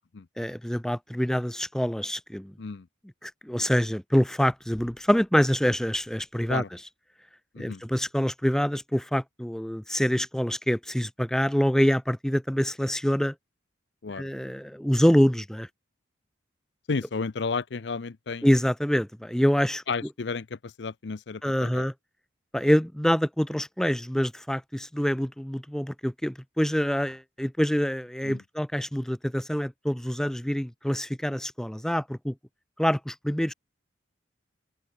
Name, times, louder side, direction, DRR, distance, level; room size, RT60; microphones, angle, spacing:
voice 1, 0.4-2.5 3.2-6.6 7.6-13.3 14.2-15.7 18.4-19.8 21.4-21.9 22.5-32.3 32.8-33.5, equal, 5° left, 0.5 m, -26 dB
voice 2, 16.9-18.5 19.9-21.9 28.2-28.4, left 4 dB, 60° left, 0.6 m, -32 dB
open air
head